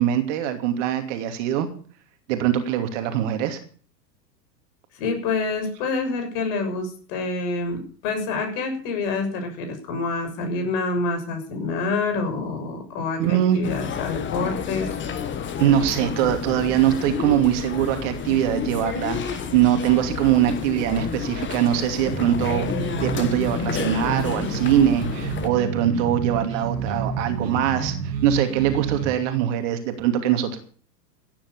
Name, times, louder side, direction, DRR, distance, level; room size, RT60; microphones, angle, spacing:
voice 1, 0.0-1.7 2.3-3.6 13.2-13.6 15.6-22.7 23.0-30.6, right 10 dB, 45° right, 7 dB, 2.8 m, -22 dB
voice 2, 4.9-14.9, left 3 dB, 45° left, 5 dB, 6.8 m, -27 dB
sound 1, 13.6-25.5, left 7 dB, 25° left, 2.1 m, -30 dB
sound 2, 22.1-29.1, right 6 dB, 70° right, 2.6 m, -30 dB
16.5 x 10.5 x 6.8 m, 0.44 s
figure-of-eight pair, 95°, 49 cm